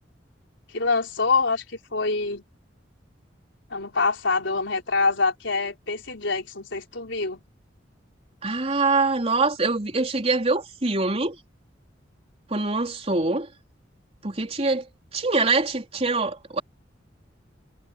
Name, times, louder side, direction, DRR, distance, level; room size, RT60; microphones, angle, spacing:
voice 1, 0.7-1.6 1.9-2.4 3.7-7.4, left 4 dB, 80° left, 4.0 m, -25 dB
voice 2, 8.4-11.4 12.5-13.5 14.2-14.9 15.1-16.6, right 3 dB, 35° right, 4.0 m, -24 dB
head